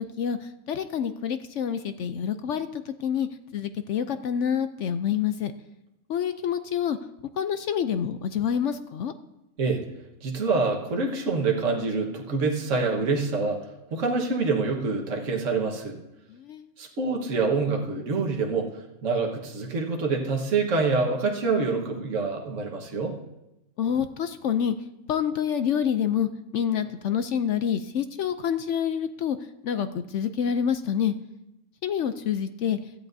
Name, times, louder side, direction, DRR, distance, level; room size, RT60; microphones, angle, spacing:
voice 1, 0.0-3.3 3.5-5.5 6.1-7.0 7.4-9.1 16.3-16.7 23.8-24.7 25.1-29.4 29.6-31.1 31.8-32.8, left 8 dB, 65° left, 10 dB, 0.8 m, -27 dB
voice 2, 10.2-13.6 13.9-16.0 16.8-18.7 19.0-23.1, right 4 dB, 60° right, 0 dB, 1.7 m, -26 dB
16.5 x 13.0 x 2.7 m, 0.92 s
omnidirectional pair, 1.6 m